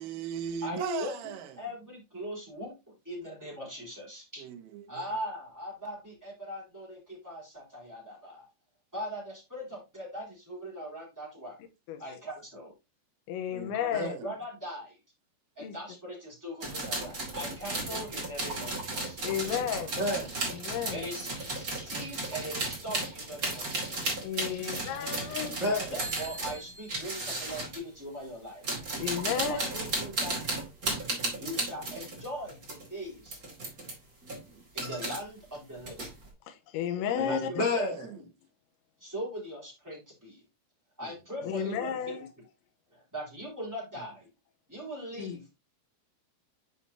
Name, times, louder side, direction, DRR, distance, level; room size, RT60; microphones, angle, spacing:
voice 1, 0.0-1.5 4.4-5.0 13.4-14.3 19.5-19.7 19.9-20.3 24.3-24.4 25.6-26.0 37.2-38.2, right 9 dB, 75° right, 3.8 m, -37 dB
voice 2, 0.6-4.4 4.9-8.5 8.9-11.6 12.0-12.7 13.7-15.0 15.5-19.2 20.9-21.3 21.6-24.1 25.9-28.7 29.3-30.4 31.4-33.4 34.7-36.1 37.2-37.9 39.0-40.4 41.0-42.1 42.9-44.3 44.7-45.5, equal, 5° right, 2.7 m, -40 dB
voice 3, 13.3-14.2 15.6-15.7 19.2-20.2 20.5-21.1 24.2-25.8 29.0-29.6 36.5-38.0 41.4-42.3 45.2-45.4, left 8 dB, 80° left, 2.9 m, -32 dB
sound 1, 16.6-27.8 28.5-32.9 33.2-33.9 34.2-35.2 35.5-36.3, right 2 dB, 50° right, 1.0 m, -35 dB
9.9 x 5.1 x 2.7 m
omnidirectional pair, 6.0 m